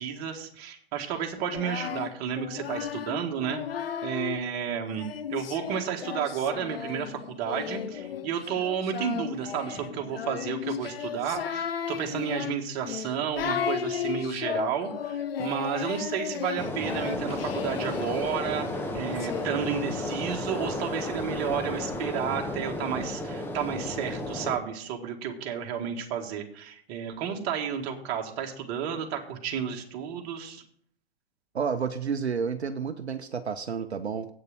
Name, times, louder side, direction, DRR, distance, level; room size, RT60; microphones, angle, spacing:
voice 1, 0.0-18.7 18.9-30.6, right 8 dB, 35° right, 3 dB, 1.8 m, -32 dB
Singing, 1.4-4.4 5.0-19.4, left 8 dB, 65° left, 0.9 m, -34 dB
sound 1, 16.6-24.6, left 1 dB, 5° left, 1.1 m, -33 dB
voice 2, 31.5-34.3, right 6 dB, 80° right, 9 dB, 0.8 m, -30 dB
8.6 x 6.6 x 7.2 m, 0.63 s
figure-of-eight pair, 110°, 32 cm